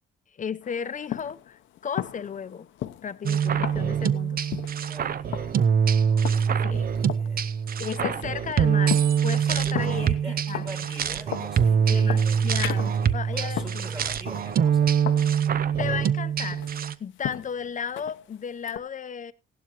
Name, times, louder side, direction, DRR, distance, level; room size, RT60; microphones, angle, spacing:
voice 1, 0.4-2.7 3.0-4.5 6.6-6.9 7.8-10.1 10.5-10.6 11.9-13.9 15.8-16.7 17.0-19.3, left 7 dB, 40° left, 0.8 m, -34 dB
sound 1, 0.6-18.8, left 12 dB, 75° left, 0.8 m, -38 dB
sound 2, 3.2-16.9, right 7 dB, 50° right, 0.7 m, -24 dB
voice 2, 4.9-5.4 6.0-7.5 9.3-12.6 13.0-15.0, right 2 dB, 25° right, 2.9 m, -44 dB
16.0 x 11.5 x 3.0 m
cardioid pair, 90°, 20 cm